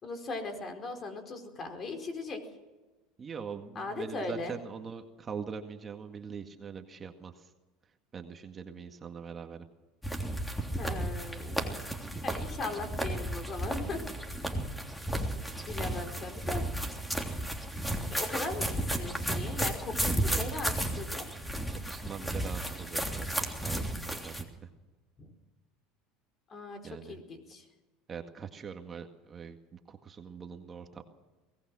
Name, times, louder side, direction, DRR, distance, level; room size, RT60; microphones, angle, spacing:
voice 1, 0.0-2.4 3.7-4.6 10.8-11.6 12.2-14.0 15.7-16.7 18.1-21.2 25.2-25.3 26.5-27.6, left 3 dB, 35° left, 5 dB, 4.6 m, -39 dB
voice 2, 3.2-7.5 8.1-9.6 12.7-12.8 15.1-15.5 20.0-20.4 21.8-24.7 26.8-27.2 28.1-31.0, right 6 dB, 30° right, 5 dB, 1.9 m, -43 dB
sound 1, 10.0-24.4, right 1 dB, 5° left, 3.2 m, -33 dB
23.5 x 18.5 x 6.3 m, 1.2 s
supercardioid pair, 110°, 0 cm